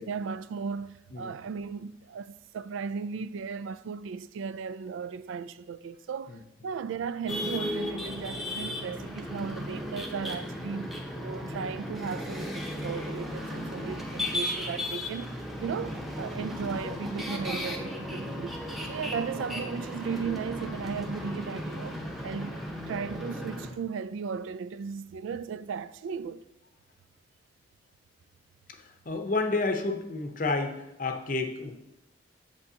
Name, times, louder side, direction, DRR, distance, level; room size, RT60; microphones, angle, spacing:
voice 1, 0.0-18.6 18.9-26.4, right 6 dB, 80° right, 0.3 m, -36 dB
sound 1, 7.3-23.7, left 1 dB, ahead, 0.7 m, -35 dB
voice 2, 29.1-31.7, left 3 dB, 45° left, 0.7 m, -30 dB
8.3 x 7.6 x 2.8 m
head